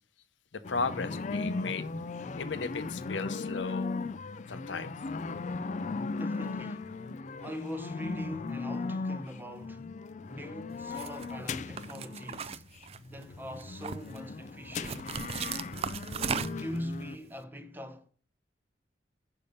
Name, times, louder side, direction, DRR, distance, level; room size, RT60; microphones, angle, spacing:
voice 1, 0.5-1.8 2.4-4.1 4.5-4.9, left 4 dB, 90° left, 0.7 m, -35 dB
sound 1, 0.6-17.2, left 3 dB, 40° left, 0.4 m, -37 dB
voice 2, 6.1-6.9 7.4-9.9 10.3-12.6 13.1-15.1 16.3-18.1, equal, 10° right, 0.7 m, -42 dB
sound 2, 10.9-11.3 11.8-13.2 13.6-14.2 14.8-16.8, right 6 dB, 35° right, 0.3 m, -36 dB
6.8 x 5.5 x 5.2 m
head